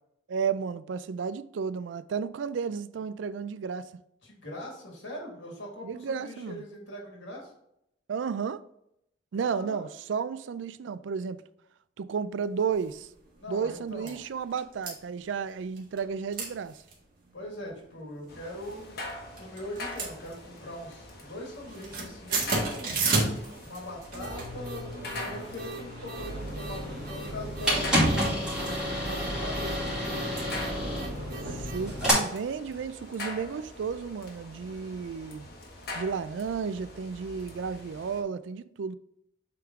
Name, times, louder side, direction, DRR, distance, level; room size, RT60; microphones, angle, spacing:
voice 1, 0.3-3.9 5.8-6.6 8.1-8.6 9.3-11.4 12.0-13.1 13.5-16.8 31.5-35.5 35.9-39.0, right 6 dB, 75° right, 0.4 m, -33 dB
voice 2, 4.2-7.5 9.4-9.9 13.4-14.2 17.3-19.0 19.3-23.0 23.6-30.3, left 1 dB, 80° left, 2.0 m, -41 dB
sound 1, 12.8-12.9 13.4-13.5 13.7-14.2 14.6-14.9 15.8-16.1 16.3-16.5 16.8-16.9 17.4-17.8 18.5-19.0 19.4-20.7 21.0-21.3 21.6-32.1, right 3 dB, 50° right, 1.7 m, -35 dB
sound 2, 18.3-38.2, left 2 dB, 55° left, 1.3 m, -44 dB
sound 3, 26.2-32.1, equal, 5° right, 2.3 m, -30 dB
7.6 x 3.6 x 3.6 m
head